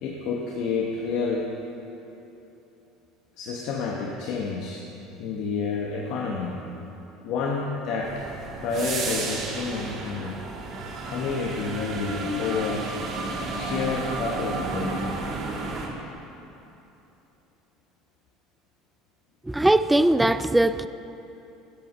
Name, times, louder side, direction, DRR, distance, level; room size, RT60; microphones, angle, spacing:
voice 1, 0.0-1.6 3.4-4.9 5.2-6.6 7.2-8.3 8.6-10.4 11.0-12.9 13.5-15.1, left 4 dB, 65° left, -1 dB, 1.1 m, -29 dB
sound 1, 8.0-15.9, right 3 dB, 50° right, 2.0 m, -32 dB
voice 2, 19.4-20.9, right 1 dB, 10° right, 13 dB, 0.4 m, -20 dB
12.0 x 8.1 x 5.5 m, 2.9 s
hypercardioid pair, 85°, 0 cm